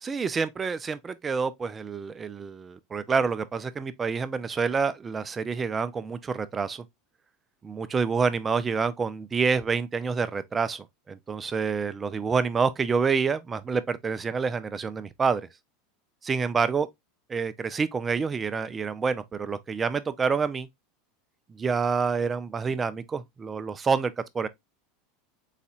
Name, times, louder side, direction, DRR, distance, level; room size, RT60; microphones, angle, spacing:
voice 1, 0.0-6.8 7.6-15.5 16.2-16.9 17.3-20.7 21.5-24.5, right 5 dB, 20° right, 0.5 m, -27 dB
4.2 x 4.1 x 2.4 m
supercardioid pair, 120°, 0 cm